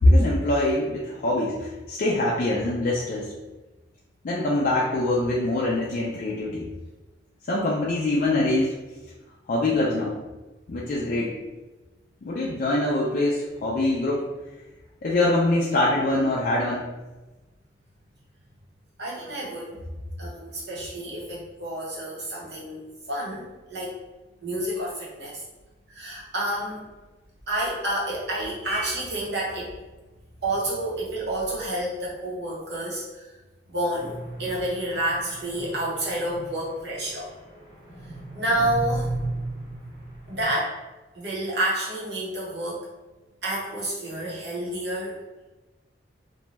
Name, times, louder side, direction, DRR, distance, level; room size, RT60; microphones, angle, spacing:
voice 1, 0.0-3.3 4.2-6.7 7.5-8.8 9.5-10.2 10.7-11.4 12.2-14.2 15.0-16.9, left 1 dB, 45° left, -5 dB, 0.4 m, -23 dB
voice 2, 19.0-19.8 20.2-22.8 23.1-23.9 24.4-25.4 25.9-26.8 27.5-29.7 30.4-33.3 33.7-34.1 34.4-37.3 38.3-39.1 40.3-40.7 41.1-42.9 43.4-45.2, right 1 dB, 65° right, -5 dB, 0.9 m, -29 dB
sound 1, 33.9-40.5, right 2 dB, 20° left, 0.7 m, -36 dB
2.6 x 2.2 x 3.0 m, 1.1 s
head